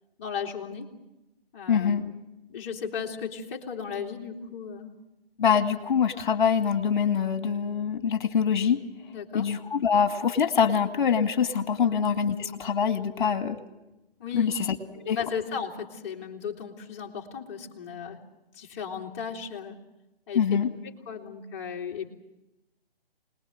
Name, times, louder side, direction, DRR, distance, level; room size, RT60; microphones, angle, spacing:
voice 1, 0.2-0.9 1.5-2.1 2.5-4.9 9.1-9.5 11.8-12.0 14.2-14.5 15.1-18.2 18.5-19.8 20.3-20.5 20.8-22.1, left 6 dB, 25° left, -1 dB, 2.8 m, -36 dB
voice 2, 1.7-2.0 5.4-8.8 9.3-13.6 14.3-14.5 14.9-15.2 20.3-20.7, left 7 dB, 50° left, 7 dB, 2.2 m, -24 dB
26.0 x 20.5 x 7.7 m, 0.97 s
figure-of-eight pair, 145°, 31 cm